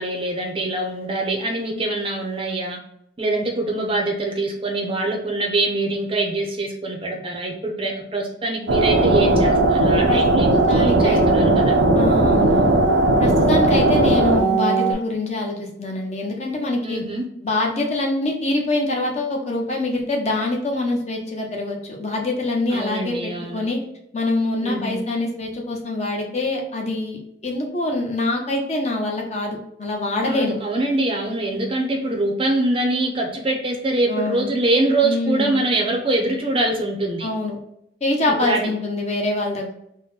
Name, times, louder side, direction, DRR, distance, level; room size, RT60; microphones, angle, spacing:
voice 1, 0.0-2.8 3.2-11.8 13.5-13.9 16.8-17.3 22.7-23.7 24.6-25.0 30.2-37.3 38.4-38.7, right 2 dB, 30° right, 1 dB, 0.5 m, -24 dB
sound 1, 8.7-14.9, right 2 dB, 75° right, 0.5 m, -17 dB
voice 2, 10.5-11.2 12.0-12.8 13.2-17.0 17.4-23.8 24.1-30.6 34.1-34.5 35.0-35.7 37.2-37.6 38.0-39.7, left 2 dB, 35° left, 0 dB, 0.7 m, -24 dB
3.7 x 2.1 x 3.9 m, 0.74 s
head